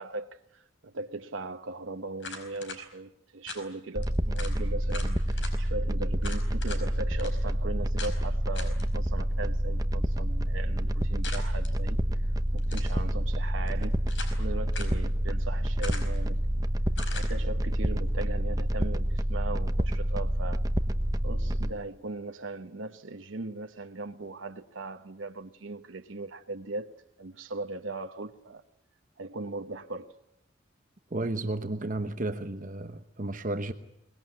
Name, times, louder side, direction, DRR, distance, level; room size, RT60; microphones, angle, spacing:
voice 1, 0.0-12.0 12.5-14.0 14.4-16.5 17.1-20.6 21.2-26.9 27.2-28.6 29.2-30.2, right 2 dB, 85° right, 1.0 m, -39 dB
sound 1, 2.2-2.8 3.5-3.6 4.0-4.1 4.4-4.6 4.9-5.5 6.2-6.8 7.2-7.3 8.0-8.2 8.5-8.8 11.2-11.7 12.6-13.0 13.7-14.4 14.7-15.0 15.8-16.2 16.9-17.3, left 4 dB, 70° left, 4.9 m, -40 dB
sound 2, 3.9-21.7, equal, 20° right, 1.0 m, -28 dB
voice 2, 31.1-33.7, right 2 dB, 40° right, 1.0 m, -32 dB
23.5 x 20.5 x 9.5 m
head